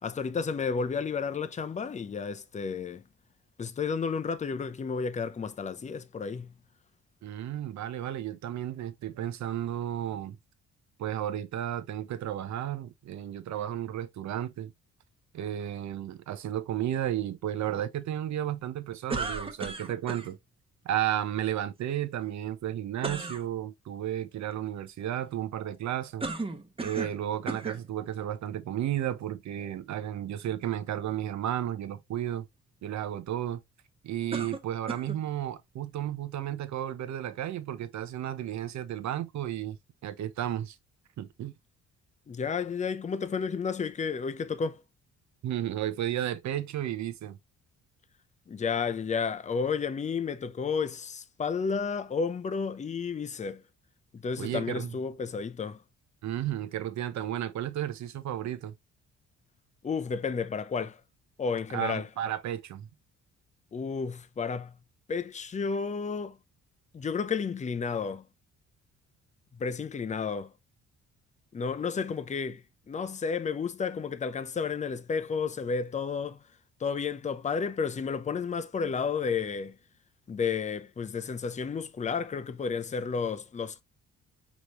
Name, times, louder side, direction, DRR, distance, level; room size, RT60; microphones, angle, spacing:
voice 1, 0.0-3.0 3.6-6.5 42.3-44.8 48.5-53.6 54.1-55.8 59.8-61.0 61.4-62.1 63.7-64.7 65.1-66.4 66.9-68.2 69.5-70.5 71.5-76.4 76.8-79.8 80.3-83.8, left 5 dB, 25° left, 0.6 m, -32 dB
voice 2, 7.2-10.4 11.0-14.7 15.3-20.4 20.8-26.3 26.8-32.5 32.8-33.6 34.0-39.8 40.0-40.8 41.2-41.5 45.4-47.4 54.4-54.9 56.2-58.7 61.7-62.9, right 11 dB, 65° right, 0.8 m, -33 dB
sound 1, 19.1-20.3 23.0-23.4 26.2-27.2 27.5-27.8 28.6-28.7 34.3-35.2, right 3 dB, 20° right, 1.0 m, -35 dB
5.1 x 3.1 x 3.1 m
cardioid pair, 90°, 30 cm